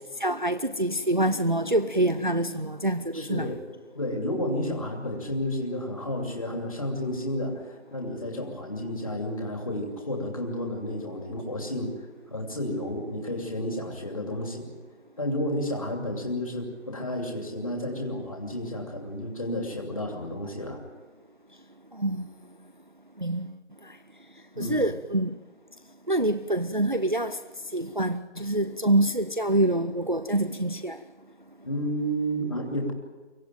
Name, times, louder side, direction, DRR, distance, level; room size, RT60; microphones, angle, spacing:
voice 1, 0.2-3.5 22.0-22.3 23.2-23.5 24.6-25.4 26.1-27.4 27.7-31.0, right 1 dB, 45° right, 0.6 m, -26 dB
voice 2, 3.1-3.6 3.9-11.9 12.3-14.7 15.2-20.8 24.5-24.9 31.6-32.9, equal, 30° left, 2.7 m, -31 dB
24.5 x 17.0 x 9.1 m
figure-of-eight pair, 170°, 35 cm